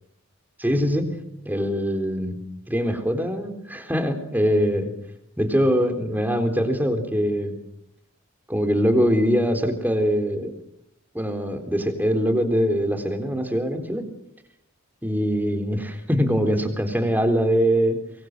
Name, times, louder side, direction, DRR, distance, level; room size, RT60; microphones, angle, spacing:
voice 1, 0.6-1.1 1.4-2.4 2.7-4.9 5.4-7.6 8.5-10.5 11.1-14.1 15.0-18.0, equal, 10° right, 6 dB, 3.8 m, -23 dB
24.5 x 23.5 x 7.9 m, 0.75 s
head